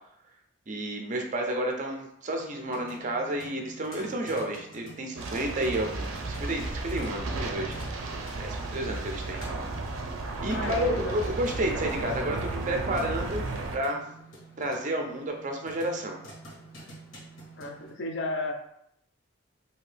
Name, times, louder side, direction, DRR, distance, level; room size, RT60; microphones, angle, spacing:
voice 1, 0.7-7.8 8.4-9.4 10.4-13.5 13.7-14.0 14.6-16.2, right 1 dB, 35° right, 2 dB, 0.4 m, -31 dB
sound 1, 2.3-17.9, right 2 dB, 85° left, 1.3 m, -49 dB
sound 2, 5.2-13.8, right 2 dB, 85° right, 0.5 m, -34 dB
voice 2, 10.5-11.2 17.6-18.5, left 2 dB, 60° left, 3 dB, 0.5 m, -33 dB
2.7 x 2.6 x 3.3 m, 0.76 s
head